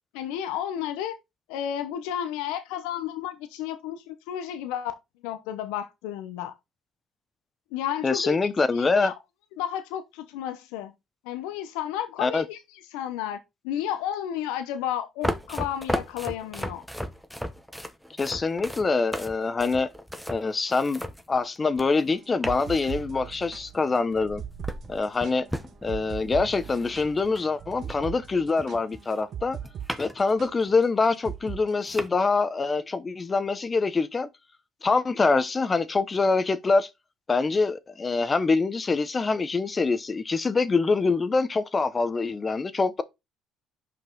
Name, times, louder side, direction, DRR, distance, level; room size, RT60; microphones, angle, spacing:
voice 1, 0.1-1.2 1.5-4.9 5.2-6.5 7.7-8.4 8.7-9.1 9.6-10.9 11.2-12.6 12.9-13.4 13.6-16.8, left 10 dB, 90° left, 0.8 m, -32 dB
voice 2, 8.0-9.1 12.2-12.4 18.2-19.9 20.3-21.0 21.3-24.4 24.9-25.4 25.8-29.6 30.0-34.3 34.8-36.9 37.3-43.0, left 4 dB, 25° left, 0.8 m, -25 dB
sound 1, 15.2-22.1 22.4-23.4 24.1-28.3 28.6-30.3 30.7-30.8 31.4-31.5 31.8-32.1, equal, ahead, 0.9 m, -35 dB
sound 2, 22.2-29.9 30.2-30.5 31.2-31.6, right 9 dB, 55° right, 1.1 m, -39 dB
5.7 x 5.3 x 3.9 m
supercardioid pair, 90°, 0 cm